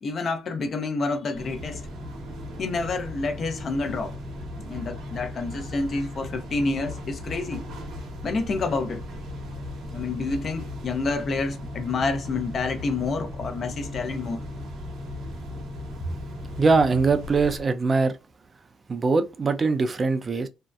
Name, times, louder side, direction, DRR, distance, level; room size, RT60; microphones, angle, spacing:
voice 1, 0.0-1.9 2.6-4.1 4.6-7.6 8.2-9.0 9.9-14.4, left 3 dB, 50° left, 0.5 m, -28 dB
sound 1, 1.3-17.6, left 1 dB, 80° right, 0.9 m, -37 dB
voice 2, 16.6-18.2 18.9-20.5, right 4 dB, 35° right, 0.4 m, -22 dB
2.6 x 2.1 x 2.3 m
cardioid pair, 80°, 0 cm